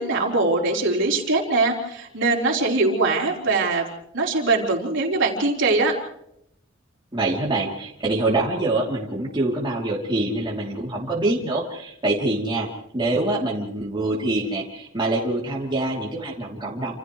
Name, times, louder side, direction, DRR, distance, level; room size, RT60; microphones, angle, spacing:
voice 1, 0.0-3.9 4.1-5.9, right 3 dB, 60° right, -1 dB, 4.1 m, -22 dB
voice 2, 7.1-16.9, right 2 dB, 25° right, -3 dB, 3.0 m, -25 dB
29.0 x 28.0 x 3.2 m, 0.75 s
head